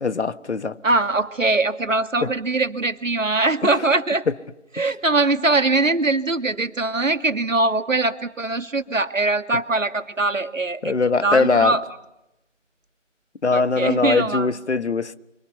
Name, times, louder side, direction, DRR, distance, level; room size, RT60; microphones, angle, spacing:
voice 1, 0.0-0.8 2.2-2.3 10.8-11.7 13.4-15.2, left 4 dB, 60° left, 1.3 m, -21 dB
voice 2, 0.8-4.3 4.7-10.9 11.2-11.9 13.5-14.5, right 2 dB, 85° right, 2.1 m, -22 dB
29.5 x 25.0 x 6.8 m
figure-of-eight pair, 165°, 38 cm